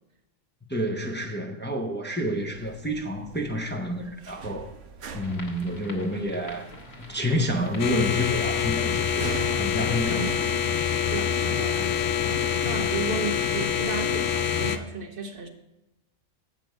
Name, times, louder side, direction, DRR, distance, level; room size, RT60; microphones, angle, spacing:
voice 1, 0.7-4.7 5.1-6.7 7.1-10.4, equal, 10° left, 0.6 m, -29 dB
sound 1, 2.4-12.8, right 5 dB, 70° right, 1.1 m, -43 dB
sound 2, 5.2-10.4, left 2 dB, 55° left, 1.8 m, -46 dB
sound 3, 7.8-14.8, left 8 dB, 75° left, 0.9 m, -26 dB
voice 2, 10.1-10.4 11.1-15.5, right 3 dB, 50° right, 1.0 m, -34 dB
7.6 x 5.2 x 7.4 m
omnidirectional pair, 1.3 m